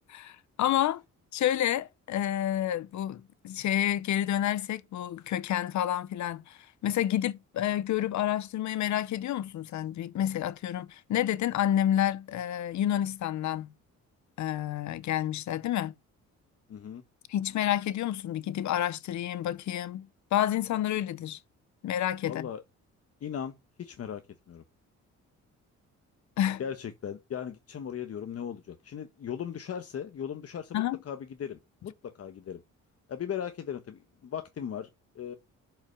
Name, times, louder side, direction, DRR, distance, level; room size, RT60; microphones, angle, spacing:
voice 1, 0.1-1.0 1.3-13.7 14.4-15.9 17.3-21.4 21.8-22.5 26.4-26.6 30.7-31.0, left 11 dB, 70° left, 0.8 m, -29 dB
voice 2, 16.7-17.0 22.2-22.6 23.2-24.2 24.5-24.6 26.6-32.6 33.1-34.9 35.1-35.4, left 8 dB, 50° left, 1.3 m, -38 dB
6.7 x 5.9 x 6.8 m
cardioid pair, 90°, 30 cm